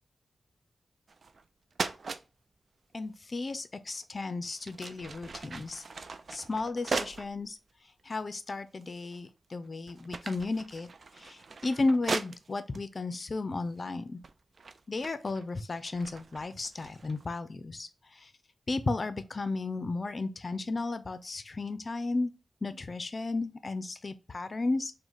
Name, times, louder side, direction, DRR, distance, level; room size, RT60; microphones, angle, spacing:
sound 1, 1.1-1.4 1.7-2.2 3.9-4.0 4.5-7.3 8.0-8.1 8.8-9.3 9.7-12.8 13.7-13.9 14.2-17.2, right 4 dB, 50° right, 0.3 m, -39 dB
voice 1, 2.9-5.8 6.3-7.6 8.0-10.9 11.1-14.2 14.9-18.3 18.7-22.3 22.6-24.9, left 3 dB, 40° left, 0.5 m, -34 dB
5.0 x 2.2 x 3.8 m
wide cardioid pair, 120°, 0 cm